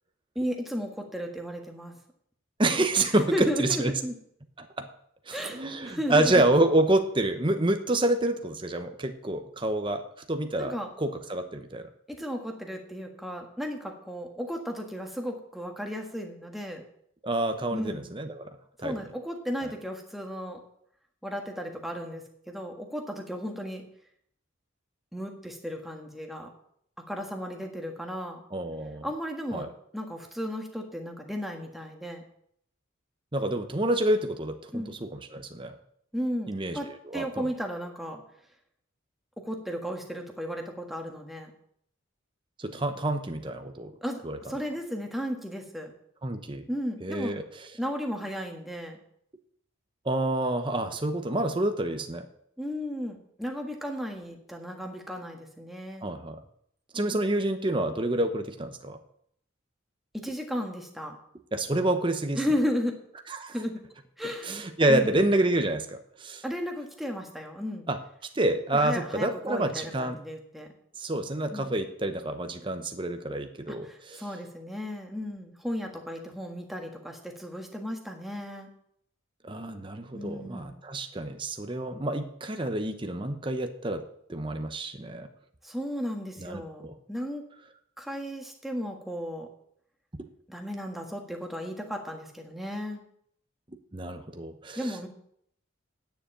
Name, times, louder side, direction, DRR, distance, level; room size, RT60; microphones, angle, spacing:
voice 1, 0.3-1.9 3.0-4.1 5.3-6.4 10.6-10.9 12.1-16.8 17.7-18.0 18.8-20.6 21.2-23.8 25.1-26.5 27.1-28.4 29.0-29.7 29.9-32.2 34.7-35.0 36.1-38.2 39.4-41.5 44.0-44.2 44.5-45.9 46.7-47.3 47.8-49.0 52.6-56.1 60.1-61.2 62.3-63.0 63.5-63.8 64.2-64.6 64.9-65.2 66.4-67.9 68.7-70.7 71.5-71.7 73.8-78.7 80.1-80.7 85.6-87.4 88.0-89.5 90.5-93.0 94.8-95.1, equal, ahead, 2 dB, 1.6 m, -34 dB
voice 2, 2.6-3.9 4.6-4.9 5.3-10.0 10.3-11.9 17.2-18.5 18.8-18.9 28.5-29.1 29.5-29.7 33.3-35.7 36.5-36.8 37.0-37.5 42.6-43.9 44.2-44.4 46.2-46.6 47.0-47.4 50.0-52.3 56.0-56.4 56.9-59.0 61.5-62.4 63.3-63.5 64.4-66.4 67.9-68.0 68.3-70.2 71.0-74.2 79.4-84.0 84.3-85.3 86.4-87.0 93.9-95.1, right 1 dB, 25° right, 7 dB, 0.8 m, -28 dB
9.8 x 7.0 x 8.9 m, 0.70 s
head